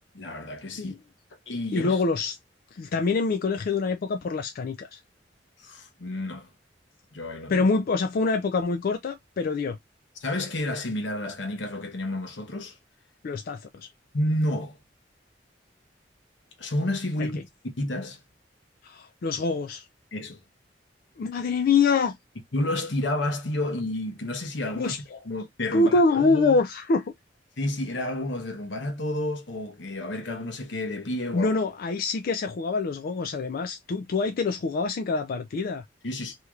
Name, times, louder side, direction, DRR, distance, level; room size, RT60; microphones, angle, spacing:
voice 1, 0.1-0.9 1.5-2.0 5.6-6.5 7.1-7.7 10.2-12.8 14.1-14.8 16.6-17.4 17.8-18.2 20.1-20.4 22.5-24.9 25.2-26.6 27.6-31.6 36.0-36.4, left 1 dB, 85° left, 0.9 m, -30 dB
voice 2, 1.7-2.3 2.8-5.0 7.5-9.8 13.2-13.9 17.2-17.3 18.8-19.8 21.2-22.2 24.7-25.2 25.7-27.1 31.3-35.8, left 4 dB, 55° left, 0.4 m, -25 dB
3.2 x 2.9 x 2.3 m
head